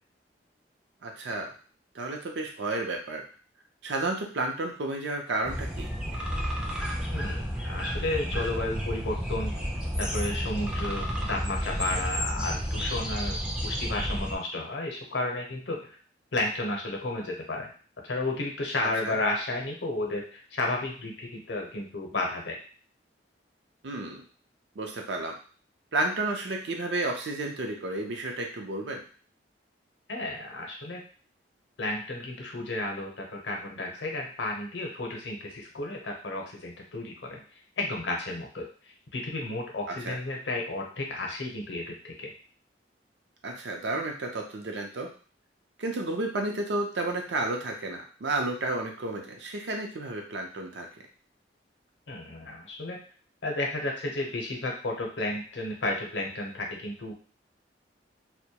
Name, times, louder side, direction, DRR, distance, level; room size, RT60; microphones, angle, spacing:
voice 1, 1.0-1.5 1.9-3.2 3.8-5.9 19.0-19.1 23.8-24.2 24.8-25.4 25.9-29.0 40.0-40.2 43.4-45.1 45.8-50.9, right 2 dB, 70° right, 2 dB, 0.5 m, -31 dB
sound 1, 5.4-14.4, equal, 5° right, 0.3 m, -31 dB
voice 2, 7.1-9.6 10.0-16.0 16.3-17.7 18.0-22.6 30.1-31.0 31.8-37.4 37.8-38.7 39.1-42.3 52.1-53.0 53.4-57.1, left 2 dB, 75° left, 0 dB, 0.6 m, -32 dB
2.2 x 2.1 x 2.7 m, 0.41 s
head